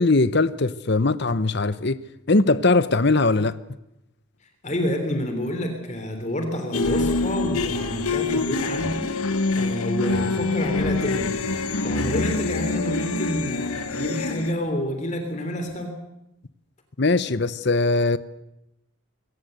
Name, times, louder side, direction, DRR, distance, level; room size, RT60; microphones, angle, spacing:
voice 1, 0.0-2.0 2.3-3.6 17.0-18.2, left 3 dB, 50° left, 0.9 m, -20 dB
voice 2, 4.6-11.3 11.8-16.0, left 1 dB, 35° left, 3.2 m, -28 dB
sound 1, 6.7-14.5, left 3 dB, 90° left, 1.4 m, -25 dB
22.0 x 18.0 x 8.1 m
head